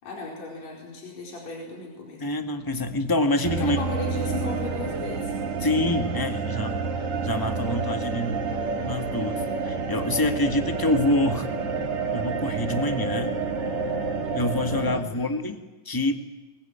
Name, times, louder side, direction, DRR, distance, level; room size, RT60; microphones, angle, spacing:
voice 1, 0.0-2.2 3.6-5.4 14.9-15.3, left 3 dB, 60° left, -1 dB, 5.9 m, -35 dB
voice 2, 2.2-3.8 5.6-6.8 7.2-8.4 8.8-11.5 12.1-13.3 14.3-16.3, left 1 dB, 20° left, 6 dB, 0.6 m, -26 dB
sound 1, 3.4-15.0, right 4 dB, 60° right, 4.0 m, -29 dB
24.5 x 21.0 x 9.1 m, 1.1 s
omnidirectional pair, 3.5 m